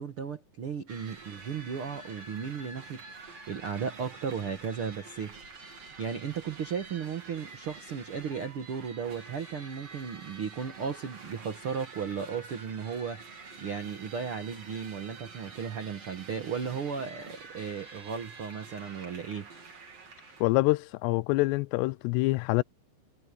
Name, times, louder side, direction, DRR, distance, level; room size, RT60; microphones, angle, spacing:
voice 1, 0.0-5.4 6.0-13.2 13.6-19.5, right 6 dB, 80° right, 1.2 m, -35 dB
sound 1, 0.9-20.4, right 4 dB, 40° right, 4.2 m, -48 dB
voice 2, 20.4-22.6, left 22 dB, 85° left, 2.7 m, -26 dB
omnidirectional pair, 4.8 m